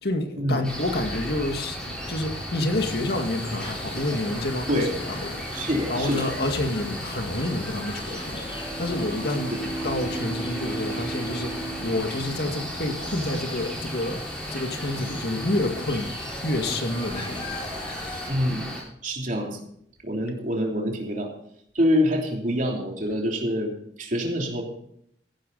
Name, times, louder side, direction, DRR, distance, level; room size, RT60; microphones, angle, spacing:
voice 1, 0.0-5.4 5.9-9.5 9.8-16.1 16.4-17.6, left 1 dB, 65° left, 5 dB, 2.0 m, -29 dB
Cricket, 0.6-18.8, equal, 5° left, 5.0 m, -35 dB
sound 1, 2.7-18.3, left 2 dB, 30° left, 3.7 m, -41 dB
voice 2, 5.5-6.2 9.5-9.6 18.3-18.7 19.0-19.6 20.0-21.3 21.7-24.6, equal, 50° right, 1 dB, 3.1 m, -26 dB
Bowed string instrument, 8.3-13.5, right 2 dB, 20° right, 3.9 m, -36 dB
15.0 x 11.5 x 4.1 m, 0.70 s
head